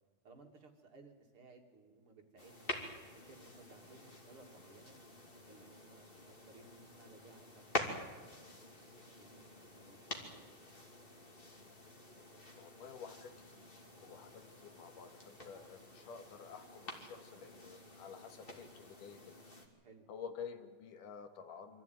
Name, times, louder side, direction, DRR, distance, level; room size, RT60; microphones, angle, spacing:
voice 1, 0.2-2.9 3.3-5.0 5.5-6.2 6.5-10.6 14.1-14.3 19.8-20.1, right 3 dB, 45° right, 3 dB, 2.7 m, -61 dB
sound 1, 2.4-19.7, left 1 dB, 20° left, 2.4 m, -48 dB
voice 2, 12.5-13.6 14.0-19.5 20.1-21.8, left 6 dB, 75° left, 7 dB, 3.1 m, -51 dB
25.0 x 15.0 x 9.3 m, 1.5 s
omnidirectional pair, 3.7 m